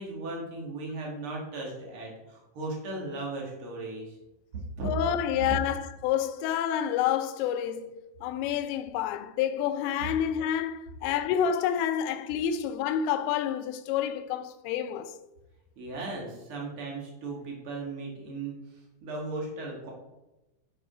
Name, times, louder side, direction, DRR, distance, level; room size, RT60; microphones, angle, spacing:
voice 1, 0.0-4.2 4.5-4.9 15.8-18.5 19.0-19.9, right 2 dB, 80° right, 1.2 m, -37 dB
voice 2, 4.8-7.9 8.2-15.1, left 9 dB, 85° left, 2.8 m, -28 dB
8.5 x 5.1 x 4.9 m
omnidirectional pair, 5.2 m